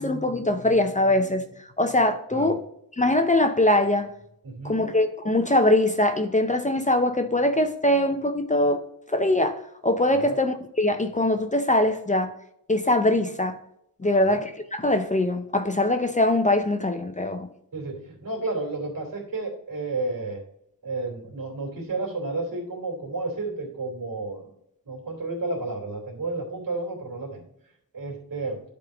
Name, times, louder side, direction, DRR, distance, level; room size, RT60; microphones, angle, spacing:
voice 1, 0.0-2.6 3.0-4.1 4.6-8.8 9.1-12.3 12.7-13.6 14.0-17.5, left 1 dB, 20° left, 0.6 m, -22 dB
voice 2, 4.4-4.9 10.1-10.4 14.0-14.4 17.7-20.4 20.8-24.5 24.8-27.5 27.9-28.6, right 2 dB, 70° right, 2.9 m, -32 dB
10.5 x 3.6 x 5.0 m
wide cardioid pair, 115°, 35 cm